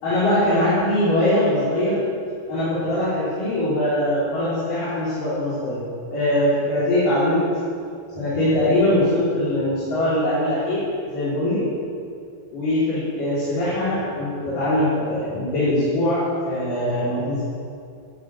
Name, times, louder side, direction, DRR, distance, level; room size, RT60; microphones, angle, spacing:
voice 1, 0.0-2.0 2.5-5.8 6.1-7.4 8.1-11.6 12.5-17.4, left 1 dB, 55° left, -11 dB, 5.2 m, -22 dB
15.0 x 9.0 x 7.9 m, 2.4 s
omnidirectional pair, 4.8 m